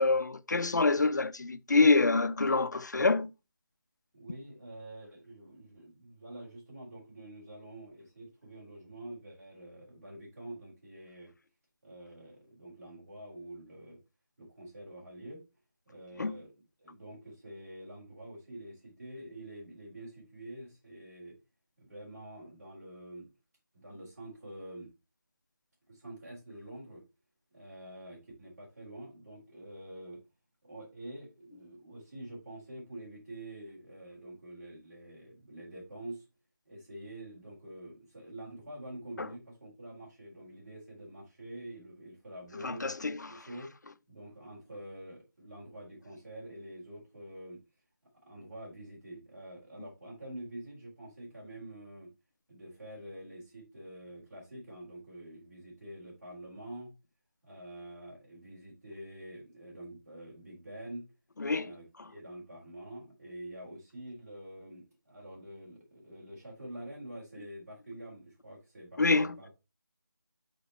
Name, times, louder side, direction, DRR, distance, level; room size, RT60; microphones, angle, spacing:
voice 1, 0.0-3.3 16.2-16.4 39.2-39.3 42.6-43.3 61.4-61.7 69.0-69.3, left 3 dB, 55° left, 0.6 m, -26 dB
voice 2, 4.1-11.3 11.8-14.0 14.4-15.4 15.9-21.3 21.8-23.3 23.7-24.9 25.9-27.0 27.5-30.2 30.6-36.2 36.7-42.8 43.3-43.7 44.1-47.6 48.3-52.1 52.5-56.9 57.4-61.1 61.5-69.5, right 1 dB, 45° right, 4.1 m, -47 dB
6.6 x 4.1 x 4.2 m
figure-of-eight pair, 170°, 11 cm